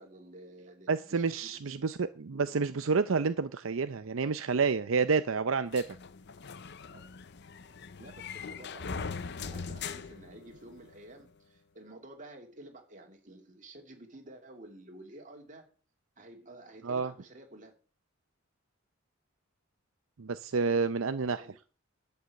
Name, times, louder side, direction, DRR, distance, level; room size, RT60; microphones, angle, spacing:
voice 1, 0.0-1.8 2.3-2.6 6.9-7.0 8.0-15.7 16.2-17.7 21.4-21.6, right 1 dB, 40° right, 2.9 m, -51 dB
voice 2, 0.9-6.0 16.8-17.1 20.2-21.4, right 5 dB, 80° right, 0.6 m, -29 dB
sound 1, 5.7-11.0, left 5 dB, 60° left, 0.7 m, -41 dB
11.5 x 5.7 x 8.4 m
head